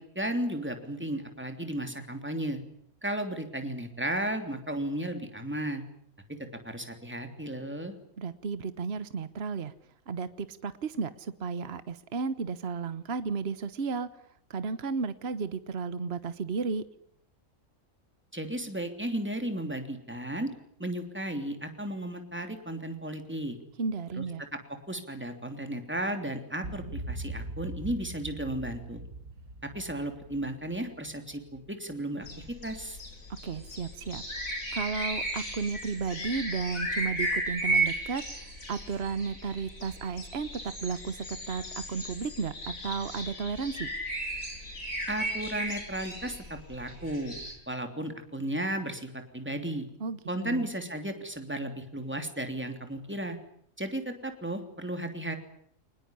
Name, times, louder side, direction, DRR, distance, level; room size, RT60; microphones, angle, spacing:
voice 1, 0.0-2.6 3.0-5.8 6.6-7.9 18.3-20.5 20.8-23.6 24.2-24.3 24.5-24.6 24.9-29.0 29.6-33.0 45.1-47.4 47.7-49.9 50.3-53.4 53.8-55.4, right 1 dB, 10° right, 6 dB, 3.1 m, -34 dB
voice 2, 8.2-9.7 10.1-14.1 14.5-16.8 23.8-24.4 33.4-34.2 34.7-38.2 38.7-41.6 41.9-43.9 50.0-50.2 50.4-50.7, right 5 dB, 50° right, 13 dB, 1.4 m, -33 dB
sound 1, 26.6-32.0, right 1 dB, 90° right, 3.6 m, -41 dB
sound 2, 32.2-47.5, right 1 dB, 85° left, 7.1 m, -35 dB
24.0 x 20.0 x 10.0 m, 0.67 s
omnidirectional pair, 1.4 m